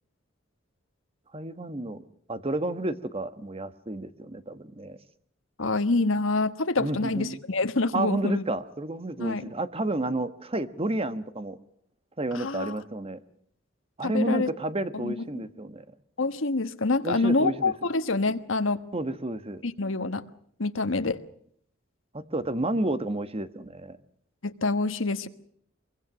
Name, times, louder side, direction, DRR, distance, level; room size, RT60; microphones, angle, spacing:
voice 1, 1.3-5.0 6.8-7.4 7.9-11.6 12.2-13.2 14.0-15.8 17.0-17.7 18.9-19.6 22.1-24.0, right 2 dB, 30° right, 11 dB, 1.3 m, -31 dB
voice 2, 5.6-8.4 9.2-9.5 12.3-12.7 14.0-14.5 14.9-15.1 16.2-18.8 19.6-20.2 20.6-21.2 24.4-25.3, left 3 dB, 75° left, 10 dB, 1.4 m, -26 dB
24.0 x 23.5 x 6.2 m, 0.66 s
head